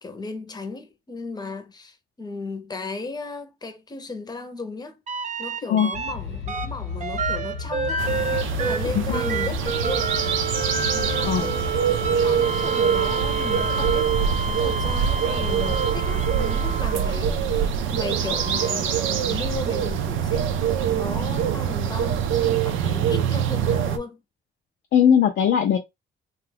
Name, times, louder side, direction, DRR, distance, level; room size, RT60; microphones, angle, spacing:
voice 1, 0.0-5.0 5.4-8.1 8.6-10.1 10.9-14.1 14.4-20.5 20.9-24.2, left 3 dB, 20° left, 0.7 m, -35 dB
sound 1, 5.1-6.1 6.5-17.2 18.1-19.7 21.4-21.5, right 5 dB, 40° right, 0.5 m, -29 dB
sound 2, 5.9-15.8, left 6 dB, 80° left, 1.0 m, -34 dB
sound 3, 8.0-24.0, right 8 dB, 80° right, 0.5 m, -24 dB
voice 2, 24.9-25.8, left 8 dB, 60° left, 0.5 m, -19 dB
2.8 x 2.3 x 3.3 m
cardioid pair, 90°, 20 cm